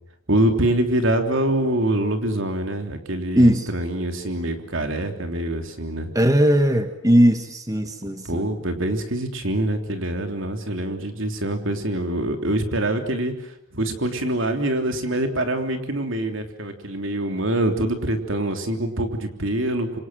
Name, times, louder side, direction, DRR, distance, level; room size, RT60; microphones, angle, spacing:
voice 1, 0.3-6.1 8.2-20.0, right 1 dB, 65° right, 5 dB, 3.3 m, -25 dB
voice 2, 3.4-3.7 6.1-8.5, equal, 15° right, 7 dB, 1.5 m, -18 dB
27.0 x 25.5 x 7.8 m, 0.75 s
head